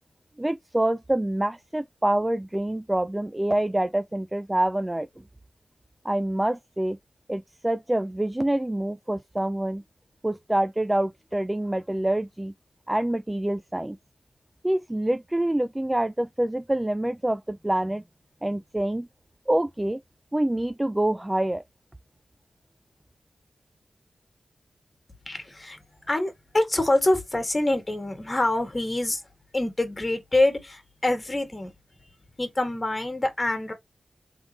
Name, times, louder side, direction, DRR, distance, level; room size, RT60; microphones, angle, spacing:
voice 1, 0.4-5.1 6.0-7.0 7.3-9.8 10.2-12.5 12.9-14.0 14.6-18.0 18.4-19.1 19.5-20.0 20.3-21.6, right 1 dB, 15° right, 0.3 m, -26 dB
voice 2, 25.3-25.8 26.1-29.2 29.5-31.7 32.4-33.7, left 2 dB, 25° left, 1.8 m, -25 dB
3.7 x 3.6 x 3.0 m
wide cardioid pair, 75°, 0 cm